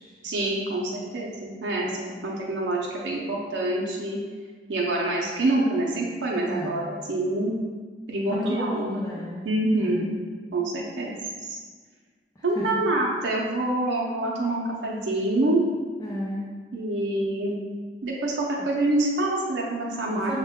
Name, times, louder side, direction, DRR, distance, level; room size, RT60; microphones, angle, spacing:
voice 1, 0.2-4.2 4.7-7.6 8.1-8.9 9.4-10.1 10.5-11.1 11.5-11.6 12.4-15.6 16.7-17.6 18.0-20.4, right 2 dB, 80° right, -3 dB, 0.6 m, -26 dB
voice 2, 6.5-6.8 8.3-9.5 9.8-10.2 12.4-12.7 16.0-16.5 20.1-20.4, equal, 20° left, -5 dB, 0.5 m, -34 dB
6.3 x 2.2 x 3.5 m, 1.5 s
head